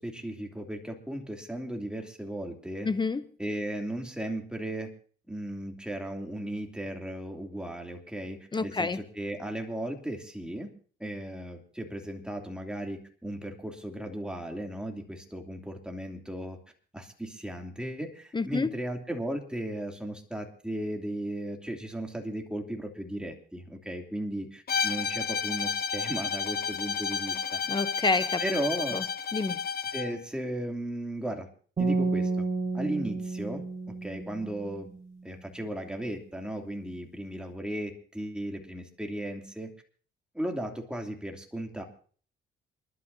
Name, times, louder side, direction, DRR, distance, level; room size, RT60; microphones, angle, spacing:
voice 1, 0.0-2.9 3.4-4.9 5.3-10.7 11.0-16.6 16.9-27.6 28.4-29.0 29.9-31.5 31.8-32.3 32.7-34.9 35.2-39.7 40.3-41.8, right 1 dB, 5° right, 2.7 m, -36 dB
voice 2, 2.8-3.2 8.5-9.0 18.3-18.7 27.7-28.4 28.9-29.0 29.3-29.6, left 4 dB, 25° left, 0.7 m, -28 dB
Bowed string instrument, 24.7-30.2, left 6 dB, 50° left, 1.1 m, -31 dB
sound 1, 31.8-35.0, right 3 dB, 35° right, 4.7 m, -31 dB
28.5 x 12.0 x 2.7 m
cardioid pair, 90°, 20 cm